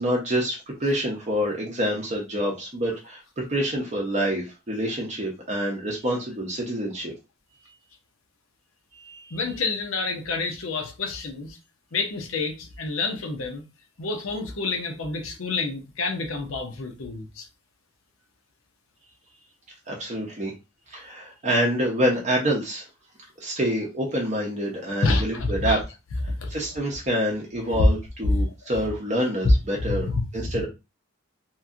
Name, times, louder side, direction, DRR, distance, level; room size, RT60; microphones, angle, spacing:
voice 1, 0.0-7.1 9.0-9.4 19.9-20.5 20.9-22.8 23.4-25.8 26.5-30.1 30.3-30.7, equal, 30° right, 0.6 m, -27 dB
voice 2, 9.3-11.6 11.9-13.6 14.0-17.5 25.0-25.8 26.4-26.5 27.7-27.8 28.3-28.4 29.8-30.2 30.5-30.7, left 3 dB, 70° left, 0.7 m, -28 dB
2.9 x 2.6 x 2.4 m
head